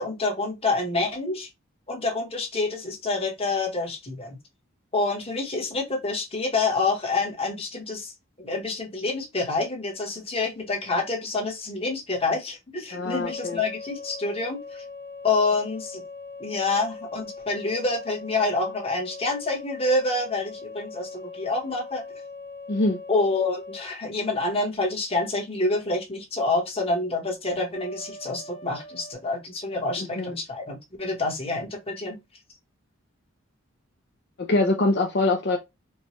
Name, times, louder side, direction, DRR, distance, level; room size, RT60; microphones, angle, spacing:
voice 1, 0.0-1.5 1.9-4.4 4.9-8.1 8.4-14.8 15.2-16.0 16.4-22.0 23.1-32.2, left 3 dB, 30° left, 1.2 m, -27 dB
voice 2, 12.9-13.6 22.7-23.0 30.2-30.4 34.4-35.6, left 2 dB, 55° left, 0.6 m, -23 dB
sound 1, 13.2-23.9 27.7-29.1, left 3 dB, 75° left, 1.2 m, -40 dB
4.4 x 2.3 x 3.0 m
head